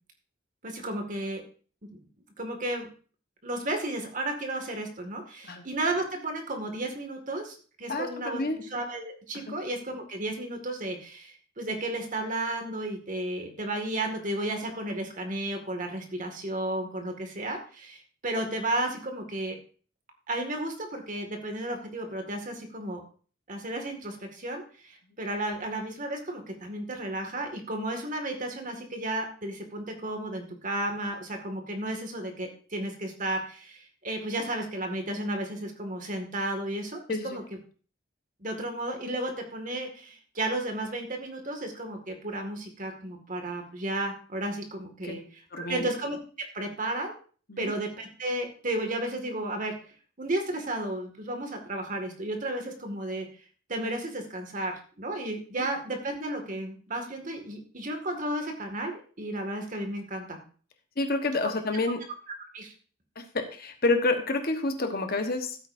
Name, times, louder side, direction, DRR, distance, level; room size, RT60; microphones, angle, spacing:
voice 1, 0.6-1.4 1.9-2.0 2.4-2.9 3.4-19.6 20.3-23.0 23.5-37.4 38.4-45.2 45.6-46.2 46.5-47.1 47.6-49.7 50.2-53.3 53.7-60.4 61.4-61.5 62.5-62.7, right 1 dB, 40° right, 4 dB, 2.1 m, -33 dB
voice 2, 7.9-8.6 9.3-9.5 37.1-37.4 45.0-45.1 45.5-45.9 47.5-47.7 55.6-55.7 61.0-62.0 63.1-65.6, left 2 dB, 50° left, 5 dB, 1.3 m, -29 dB
15.0 x 8.5 x 2.7 m, 0.40 s
head